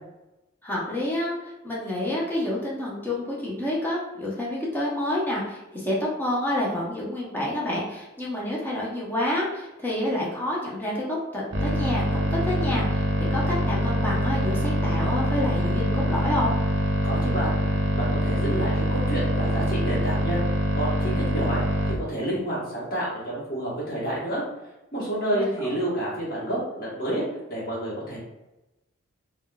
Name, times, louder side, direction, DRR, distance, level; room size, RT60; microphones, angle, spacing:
voice 1, 0.6-13.0 13.3-16.6 25.3-25.7, left 1 dB, 10° left, -6 dB, 0.6 m, -28 dB
sound 1, 11.5-21.9, equal, 60° right, 0.6 m, -24 dB
voice 2, 17.0-17.6 17.9-20.4 20.7-24.4 24.9-28.2, right 1 dB, 45° left, -7 dB, 1.1 m, -29 dB
3.6 x 2.2 x 2.2 m, 0.96 s
head